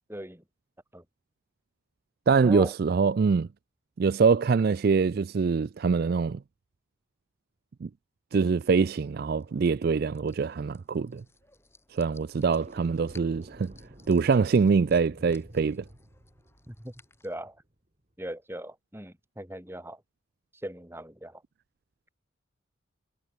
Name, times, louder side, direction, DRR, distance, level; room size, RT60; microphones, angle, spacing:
voice 1, 0.1-0.4 0.9-1.0 2.4-2.7 16.7-16.9 17.2-17.6 18.2-20.0 20.6-21.4, right 1 dB, 10° right, 2.4 m, -38 dB
voice 2, 2.3-3.5 4.0-6.4 7.8-7.9 8.3-11.2 11.9-13.7 14.1-15.8, right 5 dB, 50° right, 0.3 m, -24 dB
sound 1, 8.6-17.3, left 3 dB, 10° left, 7.2 m, -61 dB
sound 2, 12.6-17.7, right 1 dB, 35° right, 2.8 m, -51 dB
head